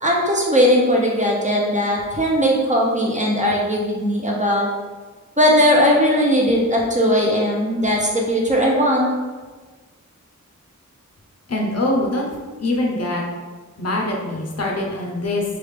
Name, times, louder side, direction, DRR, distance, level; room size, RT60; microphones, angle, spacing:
voice 1, 0.0-4.7 5.4-9.1, equal, 25° right, -3 dB, 0.6 m, -18 dB
voice 2, 11.5-13.2 13.8-15.6, left 1 dB, 50° left, -1 dB, 0.6 m, -23 dB
3.2 x 2.4 x 3.3 m, 1.4 s
wide cardioid pair, 100°, 32 cm